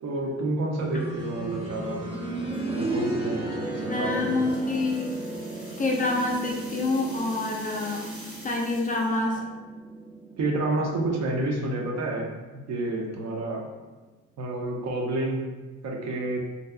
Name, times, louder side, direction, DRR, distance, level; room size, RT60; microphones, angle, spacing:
voice 1, 0.0-2.0 2.6-4.5 10.4-13.7 14.4-16.4, right 2 dB, 60° right, 0 dB, 0.6 m, -30 dB
sound 1, 0.8-11.6 12.9-13.0, right 2 dB, 15° right, 0.6 m, -34 dB
sound 2, 3.7-9.3, right 1 dB, 80° right, 1.3 m, -46 dB
voice 2, 3.9-5.1 5.8-8.1 8.4-9.4, left 2 dB, 30° left, 0 dB, 0.3 m, -27 dB
2.6 x 2.3 x 2.3 m, 1.2 s
cardioid pair, 90°, 30 cm